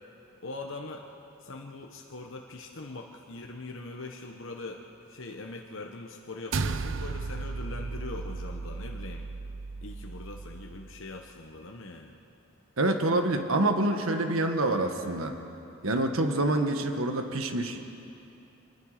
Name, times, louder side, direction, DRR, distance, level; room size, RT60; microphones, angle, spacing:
voice 1, 0.4-1.0 1.4-9.3 9.8-12.2, left 2 dB, 65° left, 2 dB, 1.1 m, -42 dB
sound 1, 6.5-11.1, right 4 dB, 65° right, 0.6 m, -35 dB
voice 2, 12.8-15.3 15.8-17.8, right 2 dB, 85° right, 5 dB, 1.5 m, -26 dB
26.5 x 20.0 x 5.0 m, 2.8 s
head